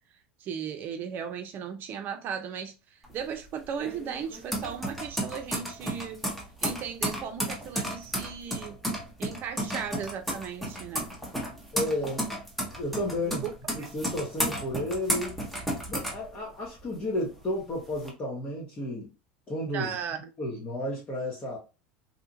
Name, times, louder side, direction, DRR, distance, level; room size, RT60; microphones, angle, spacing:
voice 1, 0.4-6.2 6.6-8.8 9.2-11.1 13.4-13.5 13.8-13.9 19.7-20.2, right 7 dB, 45° right, 0.6 m, -36 dB
sound 1, 3.0-16.9 17.3-18.1, equal, 5° left, 0.9 m, -33 dB
voice 2, 11.7-12.3 12.8-13.4 13.7-15.4 15.9-19.1 19.5-20.0 20.4-21.6, left 1 dB, 30° left, 1.1 m, -32 dB
2.8 x 2.4 x 2.6 m
hypercardioid pair, 80°, 5 cm